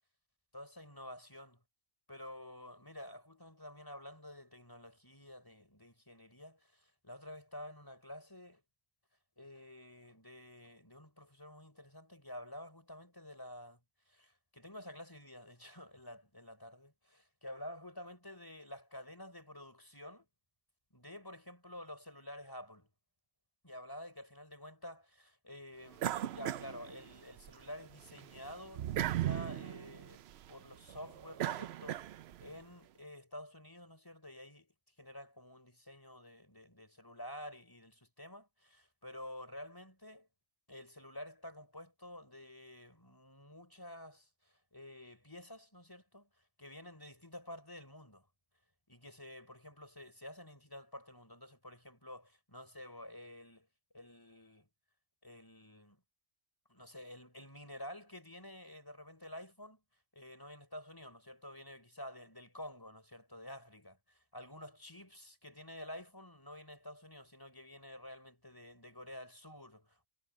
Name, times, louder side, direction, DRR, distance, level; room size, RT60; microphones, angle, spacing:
voice 1, 0.5-1.6 2.1-8.6 9.4-13.8 14.1-20.3 20.9-22.9 23.6-32.1 32.4-40.3 40.7-46.3 46.6-48.3 48.9-53.7 53.9-54.7 55.2-56.0 56.7-59.8 60.1-70.1, left 1 dB, 20° left, 5.2 m, -50 dB
sound 1, 26.0-27.5 27.9-32.5, right 12 dB, 75° right, 0.9 m, -38 dB
omnidirectional pair, 1.1 m